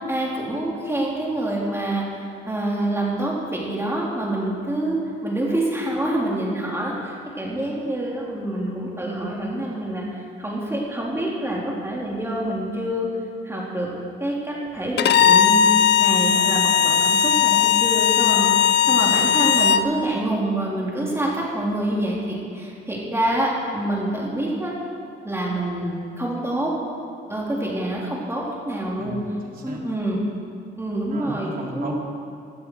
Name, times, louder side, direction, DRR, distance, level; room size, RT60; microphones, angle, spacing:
voice 1, 0.1-2.0 2.5-13.1 13.4-13.9 14.2-15.7 16.0-18.5 18.8-24.7 25.2-26.7 27.3-29.2 29.6-30.2 30.8-31.9, right 1 dB, 15° right, -4 dB, 3.6 m, -26 dB
Bowed string instrument, 15.0-19.9, left 8 dB, 60° left, 0.6 m, -18 dB
voice 2, 29.0-30.0 31.1-31.9, right 2 dB, 45° right, -1 dB, 3.2 m, -35 dB
17.0 x 12.5 x 4.9 m, 2.6 s
cardioid pair, 90°, 20 cm